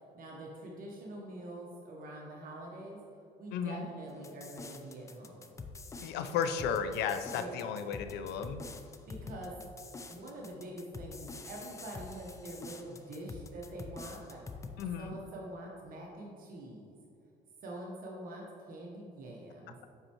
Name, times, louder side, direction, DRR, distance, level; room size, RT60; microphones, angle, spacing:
voice 1, 0.1-3.0 3.4-5.4 7.3-7.7 9.1-9.5 10.1-14.4 15.0-17.0 17.6-19.8, right 1 dB, 55° right, -2 dB, 1.0 m, -45 dB
voice 2, 3.5-3.9 6.0-8.7 14.8-15.2, left 7 dB, 80° left, 8 dB, 0.5 m, -34 dB
sound 1, 4.2-14.8, left 4 dB, 20° left, 0.4 m, -46 dB
7.9 x 5.5 x 2.9 m, 2.6 s
cardioid pair, 110°, 17 cm